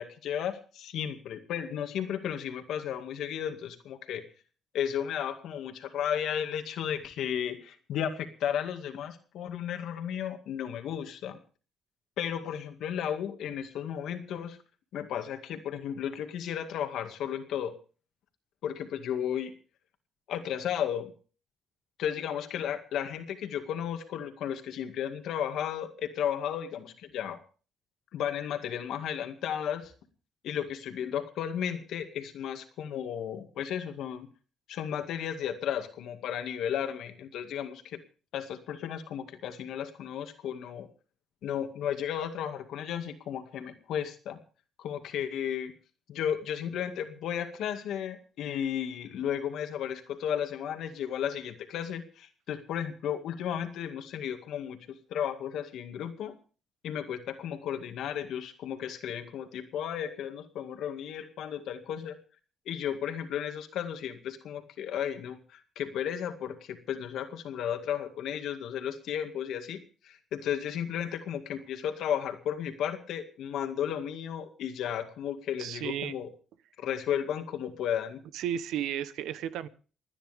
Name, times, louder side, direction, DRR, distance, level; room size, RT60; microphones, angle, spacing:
voice 1, 0.0-4.2 4.7-11.4 12.2-14.6 14.9-17.7 18.6-19.5 20.3-21.1 22.0-27.4 28.1-29.9 30.4-34.3 34.7-38.0 38.3-40.9 41.4-44.4 44.8-45.7 46.1-56.3 56.8-62.2 62.7-76.3 76.8-78.2, left 9 dB, 80° left, 6 dB, 2.1 m, -34 dB
voice 2, 75.6-76.2 78.3-79.7, right 10 dB, 90° right, 15 dB, 0.9 m, -33 dB
29.0 x 10.0 x 3.5 m, 0.39 s
cardioid pair, 90°, 0 cm